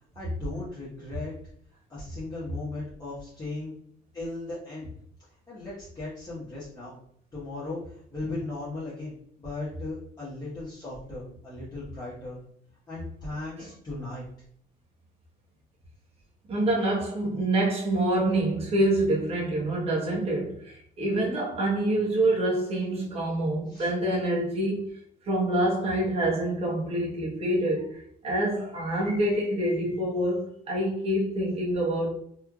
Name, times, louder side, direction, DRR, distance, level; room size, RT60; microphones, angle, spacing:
voice 1, 0.1-1.3 1.9-3.7 4.1-4.9 5.5-7.0 7.3-12.4 12.9-14.2 23.7-23.9, left 2 dB, 25° left, 1.2 m, -37 dB
voice 2, 16.5-24.8 25.2-32.1, right 1 dB, 35° right, 1.1 m, -26 dB
3.2 x 2.8 x 2.4 m
cardioid pair, 110°, 17 cm